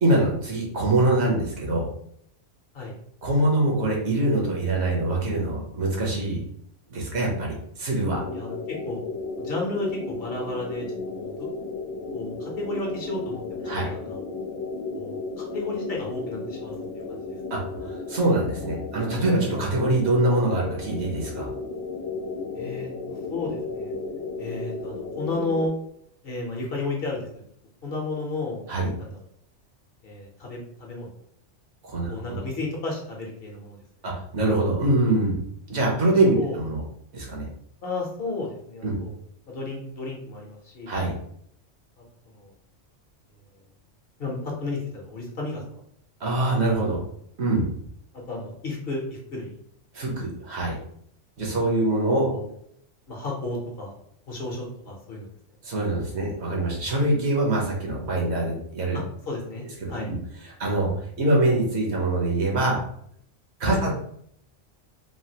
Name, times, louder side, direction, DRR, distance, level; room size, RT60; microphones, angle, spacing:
voice 1, 0.0-1.9 3.2-6.4 6.9-8.2 13.7-13.9 17.5-21.5 28.7-28.9 31.8-32.4 34.0-35.4 35.7-36.8 37.1-37.5 38.8-39.0 40.9-41.1 46.2-47.0 47.4-47.7 49.9-50.8 51.4-52.3 55.6-59.0 59.8-60.1 60.6-60.9 61.2-62.8 63.6-63.9, right 2 dB, 65° right, -2 dB, 1.0 m, -24 dB
sound 1, 8.0-25.7, left 3 dB, 85° left, 1.0 m, -34 dB
voice 2, 8.3-9.0 9.4-11.5 12.1-13.6 13.9-14.2 14.9-16.7 17.1-17.4 22.5-23.9 24.4-25.7 26.2-27.3 27.8-28.6 29.0-29.2 30.0-31.1 32.1-33.8 36.3-36.6 37.8-39.1 39.5-40.9 42.2-42.5 44.2-45.8 48.3-49.5 52.3-52.5 53.1-53.9 54.3-55.3 58.9-60.1 63.7-63.8, left 2 dB, 55° left, -1 dB, 0.8 m, -33 dB
3.2 x 2.3 x 2.7 m, 0.69 s
omnidirectional pair, 1.3 m